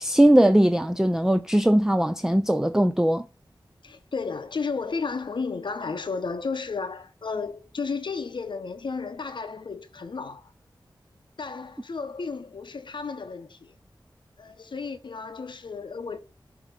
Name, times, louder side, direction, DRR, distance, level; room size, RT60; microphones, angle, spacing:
voice 1, 0.0-3.2, right 1 dB, 5° right, 0.4 m, -20 dB
voice 2, 3.8-10.5 11.4-13.7 14.4-16.2, left 4 dB, 70° left, 0.8 m, -33 dB
6.9 x 2.9 x 5.5 m
wide cardioid pair, 60°, 8 cm